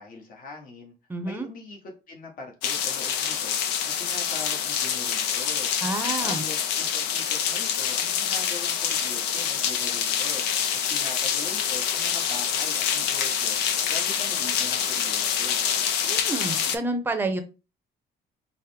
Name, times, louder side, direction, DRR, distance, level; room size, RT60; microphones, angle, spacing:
voice 1, 0.0-0.9 1.2-1.8 2.1-3.6 3.8-5.7 6.2-13.6 13.9-15.6, left 3 dB, 55° left, 2 dB, 1.1 m, -41 dB
voice 2, 1.1-1.5 5.8-6.4 16.0-17.4, right 2 dB, 10° right, 6 dB, 0.7 m, -29 dB
sound 1, 2.6-16.8, left 8 dB, 90° left, 0.5 m, -26 dB
4.8 x 2.1 x 3.3 m, 0.31 s
cardioid pair, 110°, 17 cm